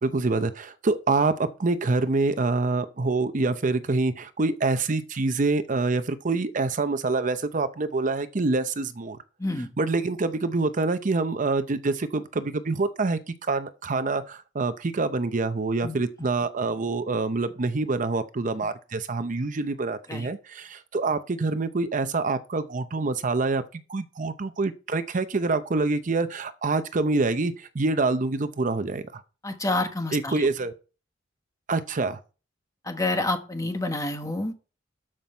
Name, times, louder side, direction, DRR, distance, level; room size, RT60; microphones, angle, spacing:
voice 1, 0.0-9.2 9.8-13.2 13.5-29.2 30.1-30.7 31.7-32.2, right 3 dB, 45° right, 0.6 m, -26 dB
voice 2, 9.4-9.7 15.8-16.0 20.1-20.3 29.4-30.4 32.8-34.5, left 2 dB, 20° left, 1.3 m, -28 dB
12.5 x 5.9 x 4.4 m
head